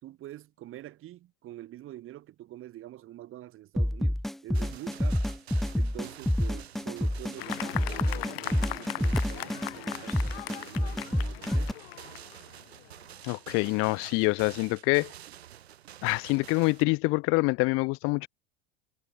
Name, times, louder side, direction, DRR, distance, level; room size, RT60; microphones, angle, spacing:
voice 1, 0.0-5.2 5.7-11.8, right 14 dB, 40° right, 2.9 m, -46 dB
sound 1, 3.8-11.7, left 1 dB, ahead, 0.4 m, -28 dB
sound 2, 4.5-16.8, right 11 dB, 70° right, 4.9 m, -49 dB
Fireworks, 7.4-13.1, left 17 dB, 60° left, 1.2 m, -39 dB
voice 2, 13.2-15.1 16.0-18.3, left 26 dB, 45° left, 0.7 m, -26 dB
figure-of-eight pair, 80°, 33 cm